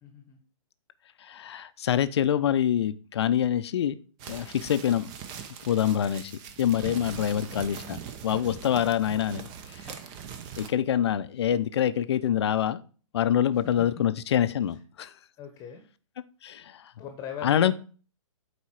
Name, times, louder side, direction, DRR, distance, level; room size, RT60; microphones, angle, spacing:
voice 1, 0.0-0.4 5.8-6.2 7.3-7.6 15.4-15.8 17.0-17.7, left 8 dB, 20° left, 5 dB, 1.1 m, -41 dB
voice 2, 1.2-4.0 4.3-5.1 5.7-6.3 6.6-9.8 10.6-12.8 13.1-15.1 16.4-16.9 17.4-17.7, left 10 dB, 55° left, 13 dB, 0.6 m, -26 dB
sound 1, 4.2-10.7, right 8 dB, 25° right, 0.8 m, -41 dB
sound 2, 9.9-10.6 11.0-11.1, right 2 dB, 10° right, 2.5 m, -56 dB
8.3 x 4.3 x 4.4 m, 0.38 s
figure-of-eight pair, 125°, 17 cm